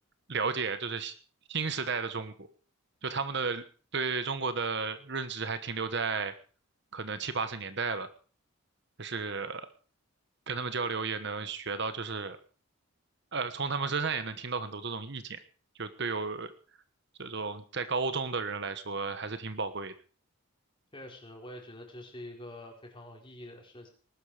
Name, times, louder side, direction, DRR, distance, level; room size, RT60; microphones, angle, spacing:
voice 1, 0.3-1.1 1.5-2.5 3.0-3.6 3.9-6.3 6.9-8.1 9.0-9.7 10.5-12.4 13.3-15.4 15.8-16.5 17.2-19.9, right 4 dB, 55° right, 11 dB, 1.3 m, -33 dB
voice 2, 20.9-23.9, left 1 dB, 25° left, 1 dB, 4.5 m, -46 dB
20.0 x 12.0 x 5.0 m, 0.40 s
head